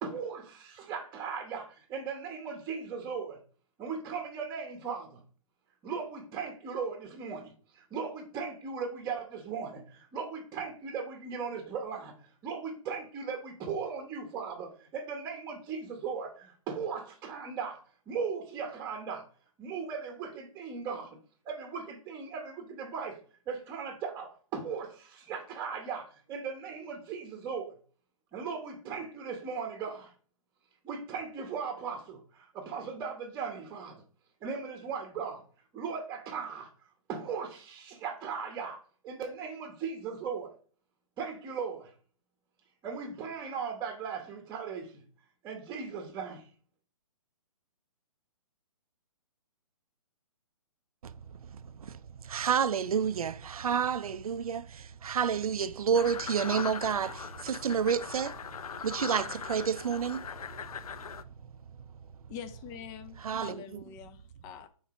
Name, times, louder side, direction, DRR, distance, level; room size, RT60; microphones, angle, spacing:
voice 1, 0.0-3.4 3.8-5.2 5.8-19.2 19.6-21.2 21.4-23.2 23.5-27.7 28.3-30.1 30.8-34.0 34.4-35.4 35.7-36.7 37.1-40.5 41.2-41.9 42.8-45.0 45.4-46.5, right 5 dB, 15° right, 1.0 m, -38 dB
voice 2, 51.4-52.0 52.2-58.4 58.8-60.3 63.2-63.6, right 7 dB, 85° right, 0.5 m, -30 dB
sound 1, 55.9-61.2, left 7 dB, 90° left, 0.5 m, -40 dB
voice 3, 62.3-64.7, left 8 dB, 20° left, 0.5 m, -45 dB
5.8 x 4.0 x 4.2 m
hypercardioid pair, 145°, 18 cm